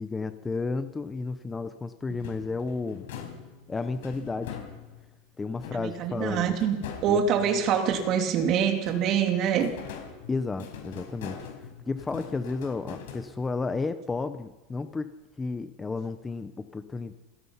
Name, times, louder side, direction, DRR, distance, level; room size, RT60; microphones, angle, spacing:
voice 1, 0.0-3.1 3.7-4.6 5.4-6.5 7.1-7.2 10.3-15.1 15.4-17.2, left 3 dB, 10° left, 11 dB, 0.7 m, -32 dB
sound 1, 2.1-5.1 5.6-8.4 8.8-13.7, left 7 dB, 80° left, 5.3 m, -43 dB
voice 2, 5.7-6.8 7.0-9.7, right 7 dB, 35° right, 5 dB, 2.7 m, -25 dB
28.0 x 17.5 x 5.7 m, 1.1 s
supercardioid pair, 160°, 0 cm